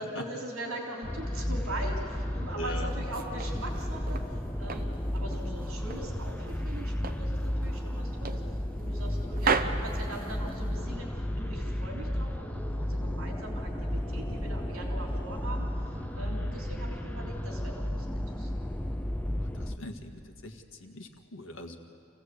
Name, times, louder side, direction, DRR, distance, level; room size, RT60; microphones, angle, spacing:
voice 1, 0.0-8.4 8.8-18.5, right 1 dB, 80° right, -1 dB, 3.6 m, -41 dB
sound 1, 1.0-19.8, equal, 5° left, 0.6 m, -33 dB
voice 2, 2.5-3.0 16.0-16.7 19.4-21.8, left 1 dB, 65° left, 4 dB, 1.8 m, -42 dB
sound 2, 2.9-4.3 4.7-6.1 6.5-7.3 7.6-7.8 8.2-9.1 9.4-10.8, right 5 dB, 45° right, 0.8 m, -34 dB
27.0 x 16.5 x 8.4 m, 2.7 s
head